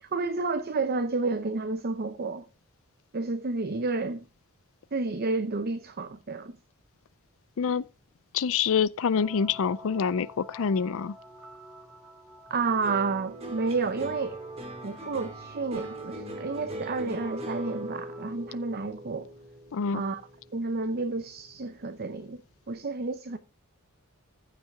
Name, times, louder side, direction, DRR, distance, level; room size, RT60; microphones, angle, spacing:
voice 1, 0.0-2.4 3.1-4.3 4.9-6.6 12.5-14.4 14.8-19.3 19.9-20.2 20.5-22.4 22.7-23.4, right 3 dB, 45° right, 0.7 m, -30 dB
voice 2, 8.3-11.1 19.7-20.0, left 6 dB, 65° left, 0.4 m, -26 dB
sound 1, 9.1-18.3, equal, 10° right, 1.6 m, -50 dB
sound 2, 12.8-21.3 21.6-22.2, right 1 dB, 30° right, 2.6 m, -40 dB
15.0 x 5.7 x 3.6 m
head